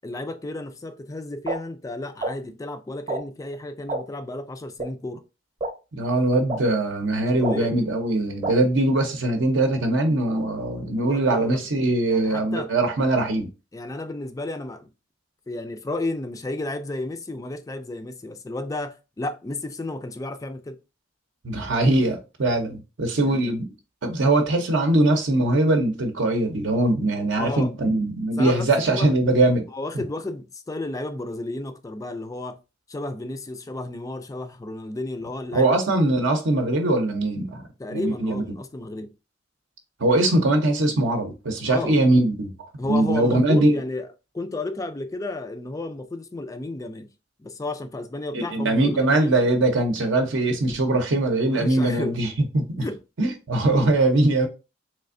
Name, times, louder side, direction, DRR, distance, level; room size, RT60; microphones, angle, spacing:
voice 1, 0.0-5.2 7.2-7.8 11.0-11.6 12.1-12.7 13.7-14.9 15.5-20.8 23.2-23.5 27.4-27.7 28.4-29.1 29.7-32.6 32.9-35.7 37.8-39.1 41.6-42.0 42.8-44.1 44.3-47.1 47.4-49.4 51.5-52.2 52.8-53.0, left 2 dB, 15° left, 0.3 m, -32 dB
sound 1, 1.5-1.6 2.2-2.3 3.1-3.2 3.9-4.0 4.8-4.9 5.6-5.7 6.5-6.6 7.4-7.6 8.4-8.5, right 2 dB, 30° right, 0.7 m, -26 dB
voice 2, 5.9-13.5 21.4-23.7 24.0-29.6 35.5-37.6 37.9-38.4 40.0-42.5 42.9-43.8 48.3-52.3 52.5-52.8 53.2-54.5, right 2 dB, 70° right, 0.6 m, -21 dB
3.3 x 3.2 x 2.5 m
head